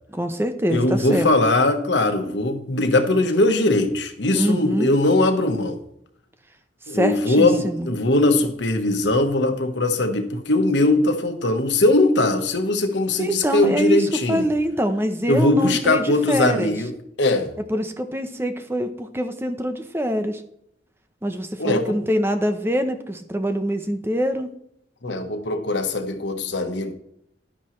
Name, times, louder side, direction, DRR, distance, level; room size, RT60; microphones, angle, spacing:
voice 1, 0.1-1.3 4.3-4.9 6.9-7.9 13.2-16.7 17.7-20.4 21.2-24.5, equal, 15° right, 8 dB, 0.8 m, -24 dB
voice 2, 0.7-5.8 6.9-14.5 15.3-17.5 21.6-22.0 25.0-26.9, left 2 dB, 90° left, 6 dB, 1.3 m, -20 dB
11.5 x 10.0 x 3.2 m, 0.73 s
head